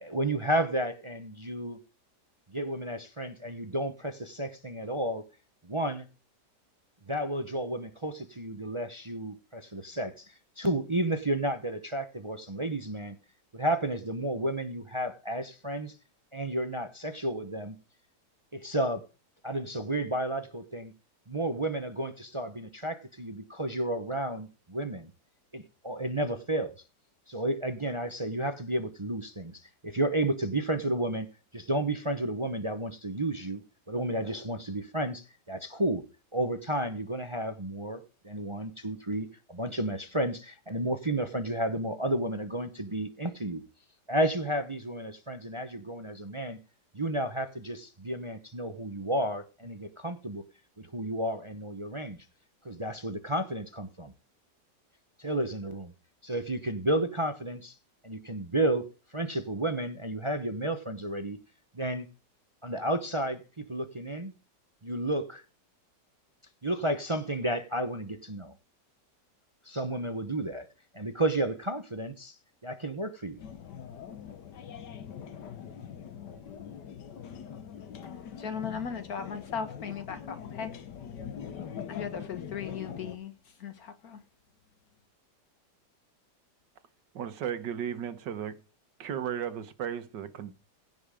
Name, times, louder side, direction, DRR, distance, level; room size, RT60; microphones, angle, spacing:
voice 1, 0.0-1.8 2.5-5.2 5.6-6.1 7.1-13.2 13.5-15.9 16.3-17.8 18.5-19.0 19.4-20.9 21.3-25.1 25.5-26.7 27.3-31.3 31.5-33.6 33.9-36.0 36.3-43.6 44.1-46.6 46.9-50.4 50.8-52.2 52.6-54.1 55.2-55.9 56.2-57.7 58.0-58.9 59.1-61.4 61.7-62.1 62.6-64.3 64.8-65.4 66.6-68.5 69.6-70.7 70.9-72.4 72.6-73.4, right 1 dB, 25° right, 0.7 m, -32 dB
sound 1, 73.4-83.2, left 8 dB, 75° left, 1.6 m, -43 dB
voice 2, 78.4-80.7 81.9-83.3 83.6-83.7 84.0-84.2, left 6 dB, 60° left, 1.8 m, -37 dB
voice 3, 87.2-88.6 89.0-90.5, right 9 dB, 80° right, 1.8 m, -35 dB
16.0 x 5.7 x 5.0 m
omnidirectional pair, 1.9 m